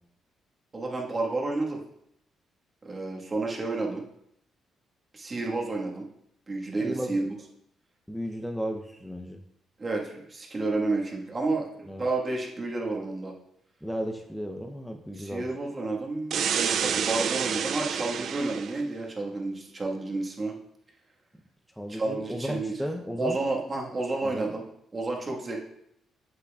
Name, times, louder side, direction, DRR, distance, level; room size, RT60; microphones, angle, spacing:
voice 1, 0.7-1.8 2.8-4.0 5.1-6.1 6.5-7.3 9.8-13.3 15.1-20.5 21.9-22.7 23.2-24.6 24.9-25.6, right 2 dB, 30° right, -1 dB, 1.5 m, -30 dB
voice 2, 6.8-7.2 8.1-9.4 11.9-12.0 13.8-15.5 21.8-23.4 24.2-24.5, equal, ahead, 3 dB, 0.6 m, -34 dB
sound 1, 16.3-18.8, right 7 dB, 65° right, 0.4 m, -28 dB
7.5 x 6.8 x 2.4 m, 0.75 s
cardioid pair, 90°, 0 cm